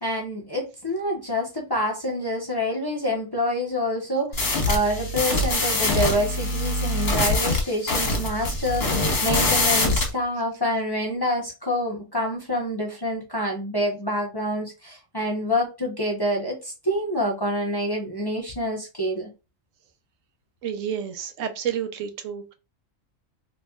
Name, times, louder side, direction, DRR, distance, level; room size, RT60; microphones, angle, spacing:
voice 1, 0.0-8.9 9.2-19.3, equal, 20° left, 0.7 m, -27 dB
sound 1, 4.3-10.1, left 2 dB, 50° left, 1.4 m, -23 dB
voice 2, 20.6-22.5, right 8 dB, 75° right, 0.9 m, -30 dB
4.1 x 2.8 x 2.3 m
omnidirectional pair, 1.3 m